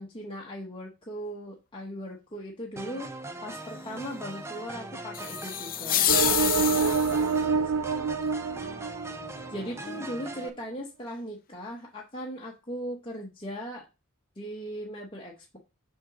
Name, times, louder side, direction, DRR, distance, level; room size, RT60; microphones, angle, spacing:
voice 1, 0.0-3.1 3.4-8.7 9.5-13.9 14.4-15.6, equal, 25° left, -2 dB, 1.1 m, -39 dB
sound 1, 2.8-10.5, right 2 dB, 10° right, 0.7 m, -40 dB
sound 2, 5.1-7.3, left 11 dB, 40° left, 0.6 m, -27 dB
sound 3, 6.1-9.7, right 5 dB, 75° right, 0.4 m, -27 dB
6.2 x 3.7 x 6.1 m, 0.27 s
head